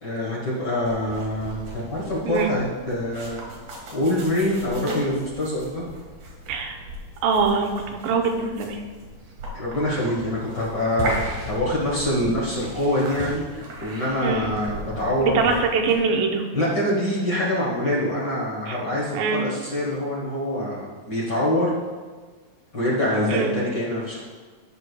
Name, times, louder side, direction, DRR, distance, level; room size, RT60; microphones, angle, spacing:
voice 1, 0.0-3.4 3.9-5.8 9.5-15.6 16.5-21.7 22.7-24.2, left 1 dB, 65° left, -5 dB, 1.0 m, -25 dB
sound 1, 0.8-16.0, right 1 dB, 60° right, 2.8 m, -36 dB
voice 2, 7.2-7.7 8.0-8.8 14.2-14.5 15.2-16.4 18.7-18.8 19.1-19.4 23.3-23.5, right 5 dB, 85° right, 3 dB, 2.5 m, -23 dB
14.5 x 6.2 x 2.2 m, 1.4 s
omnidirectional pair, 4.0 m